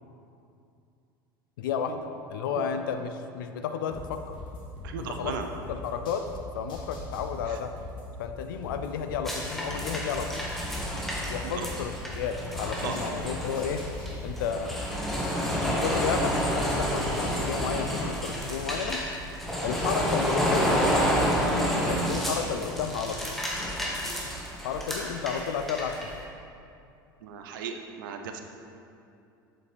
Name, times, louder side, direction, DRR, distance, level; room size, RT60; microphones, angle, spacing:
voice 1, 1.6-4.4 5.0-5.4 5.7-6.3 6.5-7.7 8.2-10.5 11.3-13.8 14.2-14.9 15.4-19.0 19.6-20.8 21.6-23.4 24.6-26.0, left 7 dB, 70° left, 7 dB, 0.4 m, -32 dB
sound 1, 3.9-6.4 6.7-9.8 10.1-13.2 13.5-16.6 17.0-17.5, left 3 dB, 45° left, 1.8 m, -41 dB
voice 2, 4.8-5.5 7.5-7.6 11.6-11.7 12.8-13.0 27.2-28.4, right 7 dB, 65° right, 5 dB, 0.7 m, -36 dB
sound 2, 9.2-26.2, equal, ahead, 1.5 m, -29 dB
7.6 x 7.1 x 3.4 m, 2.6 s
figure-of-eight pair, 70°, 12 cm